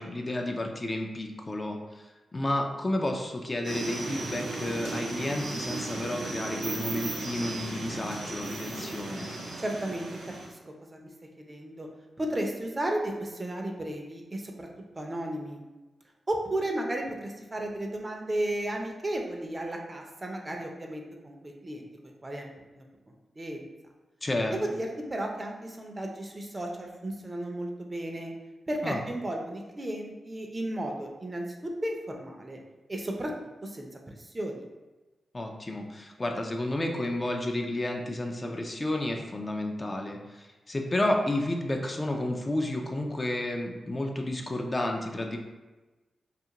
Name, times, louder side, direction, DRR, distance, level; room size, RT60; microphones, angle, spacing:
voice 1, 0.0-9.3 24.2-24.5 28.8-29.0 35.3-45.4, left 1 dB, 35° left, 2 dB, 0.4 m, -31 dB
sound 1, 3.6-10.5, right 2 dB, 85° right, 0.5 m, -35 dB
voice 2, 9.6-10.1 10.4-10.6 10.9-11.0 11.4-11.9 12.2-14.7 15.0-15.6 16.3-22.8 23.4-23.7 24.5-28.3 28.7-32.6 32.9-33.3 33.6-33.9 34.2-34.7, right 1 dB, 35° right, 1 dB, 0.5 m, -34 dB
2.4 x 2.4 x 2.8 m, 1.2 s
supercardioid pair, 45°, 0 cm